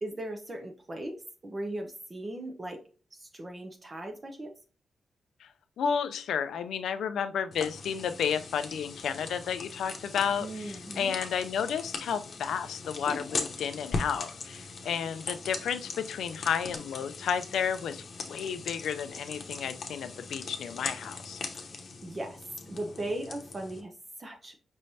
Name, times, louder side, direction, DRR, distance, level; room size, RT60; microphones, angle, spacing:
voice 1, 0.0-2.8 3.1-4.5 10.4-11.1 21.6-21.7 22.0-22.4 22.7-23.9 24.2-24.6, right 1 dB, 30° right, 3 dB, 0.7 m, -38 dB
voice 2, 5.8-21.4, left 7 dB, 85° left, 11 dB, 0.4 m, -32 dB
sound 1, 7.5-23.8, left 4 dB, 55° left, 0.8 m, -40 dB
5.3 x 3.2 x 2.7 m, 0.37 s
cardioid pair, 95°, 0 cm